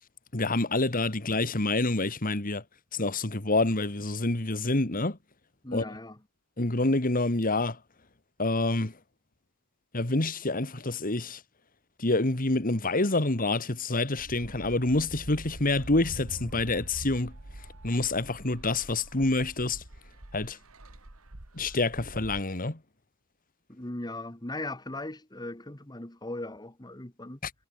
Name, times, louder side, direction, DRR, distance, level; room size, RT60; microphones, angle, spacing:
voice 1, 0.3-2.6 2.9-5.2 5.7-5.8 6.6-7.8 8.4-8.9 9.9-11.4 12.0-17.3 17.8-19.8 20.3-20.6 21.5-22.8 27.4-27.5, left 2 dB, 40° left, 2.2 m, -27 dB
voice 2, 5.6-6.2 23.7-27.4, left 2 dB, 20° left, 1.8 m, -38 dB
sound 1, 14.2-22.4, right 1 dB, 90° right, 2.4 m, -45 dB
head